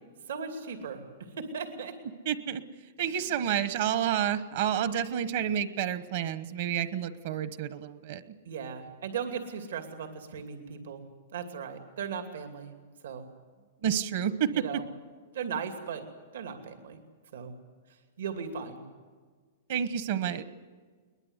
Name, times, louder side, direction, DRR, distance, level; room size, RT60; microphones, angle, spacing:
voice 1, 0.3-1.0 1.4-2.0 3.1-3.3 8.5-11.0 11.3-12.7 13.0-13.3 14.5-14.8 15.3-16.0 16.3-17.0 17.3-17.6 18.2-18.8, right 6 dB, 85° right, 5 dB, 2.6 m, -37 dB
voice 2, 2.2-2.6 3.0-8.2 13.8-14.8 19.7-20.4, right 9 dB, 55° right, 12 dB, 1.1 m, -29 dB
22.0 x 21.0 x 8.1 m, 1.5 s
supercardioid pair, 165°, 0 cm